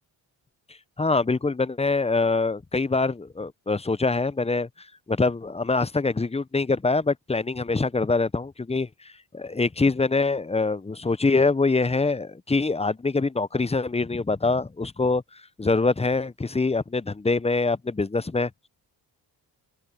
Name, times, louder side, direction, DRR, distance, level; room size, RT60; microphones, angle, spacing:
voice 1, 1.0-4.7 5.1-8.9 9.3-18.5, left 3 dB, 15° left, 0.7 m, -24 dB
open air
supercardioid pair, 50°, 48 cm